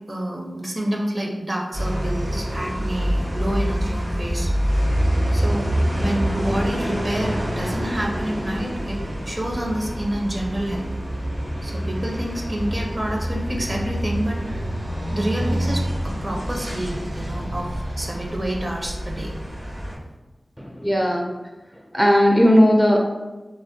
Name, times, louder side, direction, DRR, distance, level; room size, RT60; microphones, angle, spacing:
voice 1, 0.1-4.5 5.3-5.7 5.9-9.0 9.2-10.8 11.6-14.6 15.1-19.3, right 1 dB, 40° right, -1 dB, 0.7 m, -28 dB
sound 1, 1.7-20.0, equal, 90° right, 1.3 m, -26 dB
voice 2, 20.6-21.3 21.9-23.0, equal, ahead, 0 dB, 0.4 m, -16 dB
3.3 x 2.2 x 2.7 m, 1.2 s
cardioid pair, 40°, 0 cm